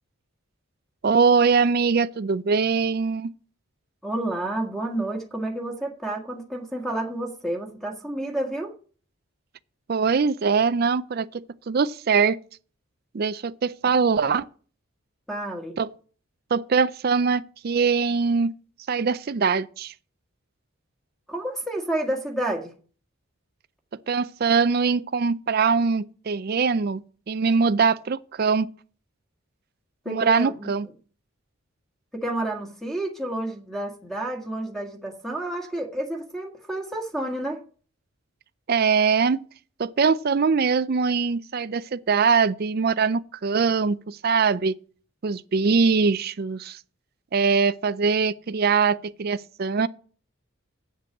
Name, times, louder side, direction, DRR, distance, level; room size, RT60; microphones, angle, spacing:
voice 1, 1.0-3.3 9.9-12.4 13.1-14.5 15.8-15.9 16.5-18.5 18.9-19.9 24.1-28.7 30.1-30.9 38.7-39.4 39.8-44.8 45.2-46.8 47.3-49.9, right 5 dB, 45° right, 0.4 m, -22 dB
voice 2, 4.0-8.7 15.3-15.8 21.3-22.8 30.0-30.7 32.1-37.6, right 1 dB, ahead, 1.7 m, -30 dB
8.1 x 7.6 x 7.2 m
head